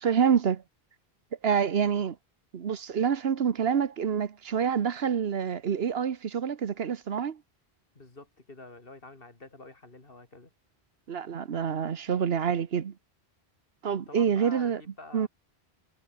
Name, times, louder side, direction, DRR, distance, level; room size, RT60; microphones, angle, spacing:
voice 1, 0.0-0.6 1.4-2.2 2.5-7.4 11.1-12.9 13.8-14.8 15.1-15.3, right 7 dB, 70° right, 1.2 m, -27 dB
voice 2, 7.9-10.5 13.9-15.3, left 2 dB, 60° left, 3.2 m, -48 dB
omnidirectional pair, 1.1 m